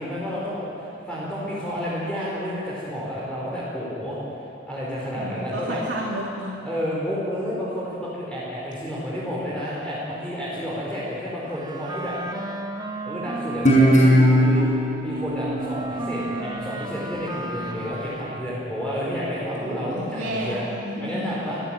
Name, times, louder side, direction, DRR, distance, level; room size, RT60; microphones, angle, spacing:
voice 1, 0.0-4.2 4.7-5.8 6.6-12.2 13.0-14.7 15.0-20.7 21.0-21.6, equal, 5° left, -8 dB, 4.8 m, -30 dB
voice 2, 5.2-6.5 19.6-21.4, equal, 80° right, -4 dB, 2.7 m, -31 dB
Wind instrument woodwind instrument, 11.4-18.6, right 1 dB, 25° right, 1.8 m, -33 dB
Guitar, 13.6-16.9, equal, 40° left, 6.4 m, -19 dB
25.5 x 15.5 x 9.2 m, 2.7 s
head